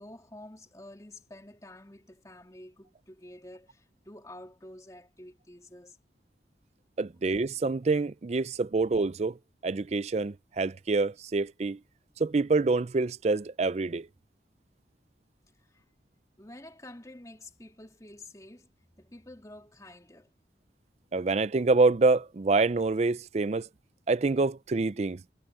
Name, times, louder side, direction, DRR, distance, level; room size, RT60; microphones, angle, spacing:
voice 1, 0.0-6.0 15.6-15.8 16.4-18.7 19.0-20.3, left 1 dB, 20° left, 2.7 m, -49 dB
voice 2, 7.0-9.4 9.6-11.8 12.2-14.1 21.1-23.7 24.1-25.2, right 3 dB, 40° right, 0.4 m, -26 dB
head